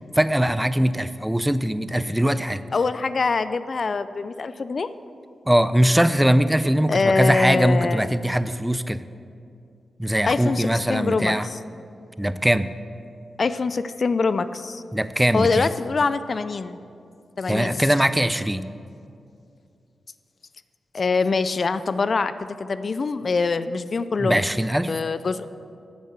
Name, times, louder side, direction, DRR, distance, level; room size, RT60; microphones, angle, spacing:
voice 1, 0.1-2.6 5.5-9.0 10.0-11.5 12.2-12.7 14.9-15.7 17.5-18.7 24.2-24.9, equal, 5° right, 13 dB, 0.4 m, -21 dB
voice 2, 2.7-4.9 6.9-8.1 10.3-11.3 13.4-14.8 15.3-16.8 17.4-17.8 20.9-24.4 24.9-25.5, left 4 dB, 55° left, 13 dB, 0.4 m, -24 dB
9.7 x 7.4 x 7.0 m, 2.5 s
cardioid pair, 55°, 0 cm